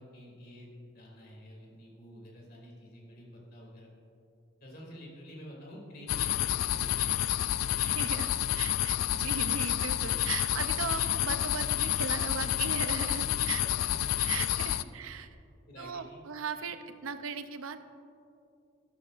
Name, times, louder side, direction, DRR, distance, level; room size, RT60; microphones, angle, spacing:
voice 1, 0.0-3.9 4.6-7.4 7.7-8.0 13.2-13.3 13.5-13.9 14.3-14.4 14.7-15.0 15.7-16.2, equal, 50° left, -3 dB, 2.7 m, -49 dB
sound 1, 6.1-14.8, left 12 dB, 85° left, 0.3 m, -29 dB
voice 2, 7.8-13.6 14.2-15.3 15.8-17.8, right 5 dB, 90° right, 10 dB, 0.6 m, -38 dB
13.0 x 13.0 x 2.5 m, 2.6 s
head